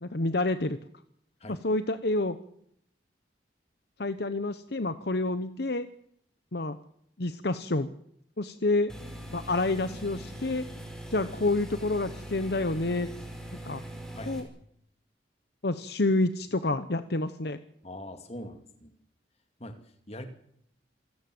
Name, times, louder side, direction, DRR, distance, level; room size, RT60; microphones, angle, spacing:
voice 1, 0.0-0.8 1.5-2.4 4.0-5.9 6.5-6.8 7.2-7.9 8.4-8.9 9.3-10.6 11.1-13.1 13.6-13.8 14.3-14.4 15.6-17.6, left 2 dB, 60° left, 11 dB, 1.0 m, -28 dB
sound 1, 8.9-14.4, right 1 dB, 5° left, 4.8 m, -41 dB
voice 2, 17.8-18.9 19.6-19.8 20.1-20.2, left 1 dB, 35° left, 7 dB, 2.6 m, -42 dB
27.0 x 16.0 x 7.8 m, 0.71 s
head